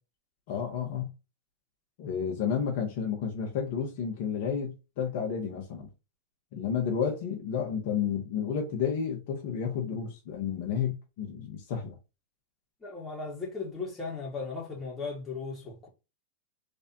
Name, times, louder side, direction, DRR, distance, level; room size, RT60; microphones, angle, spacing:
voice 1, 0.5-1.1 2.0-5.9 6.5-11.9, left 7 dB, 60° left, 1.2 m, -31 dB
voice 2, 12.8-15.9, left 4 dB, 15° left, 1.9 m, -37 dB
3.5 x 3.2 x 2.8 m
hypercardioid pair, 110°, 0 cm